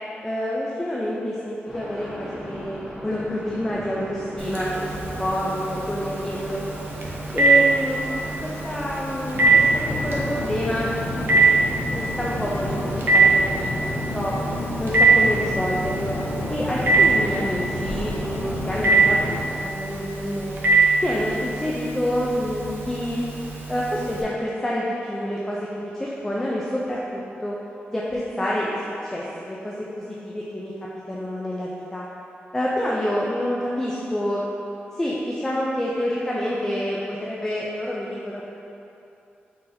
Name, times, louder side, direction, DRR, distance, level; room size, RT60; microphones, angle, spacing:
voice 1, 0.2-6.6 7.3-8.1 8.4-14.4 14.8-16.2 16.5-20.6 21.0-23.3 23.7-27.5 27.9-28.8 29.0-30.7 31.1-32.0 32.5-34.5 35.0-38.5, equal, 10° left, -5 dB, 0.3 m, -28 dB
sound 1, 1.6-10.4, equal, 25° left, 1.4 m, -38 dB
Telephone, 4.4-24.2, right 3 dB, 60° right, 0.5 m, -23 dB
sound 2, 9.3-19.4, left 2 dB, 65° left, 0.6 m, -30 dB
4.1 x 3.9 x 2.6 m, 2.8 s
wide cardioid pair, 160°, 4 cm